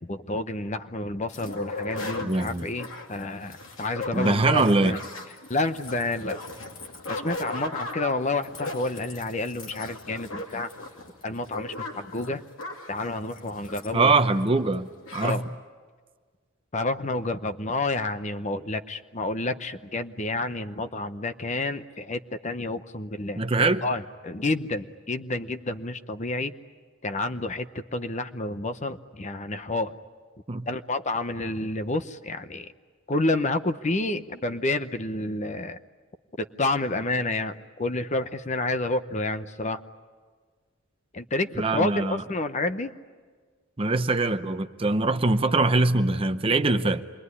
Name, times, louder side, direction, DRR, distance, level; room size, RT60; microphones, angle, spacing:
voice 1, 0.0-5.0 5.5-6.4 7.1-10.7 11.2-12.4 12.9-14.1 15.2-15.4 16.7-26.5 27.0-29.9 30.7-32.7 33.1-35.8 36.4-39.8 41.1-42.9, left 2 dB, 35° left, 10 dB, 0.8 m, -29 dB
sound 1, 1.3-14.5 14.7-14.8 15.0-15.4, left 2 dB, 70° left, 2.6 m, -37 dB
voice 2, 2.2-2.6 4.1-5.0 13.9-15.4 23.4-23.8 30.5-30.6 41.6-42.2 43.8-47.0, right 3 dB, 25° right, 9 dB, 0.7 m, -23 dB
27.5 x 22.0 x 9.7 m, 1.5 s
head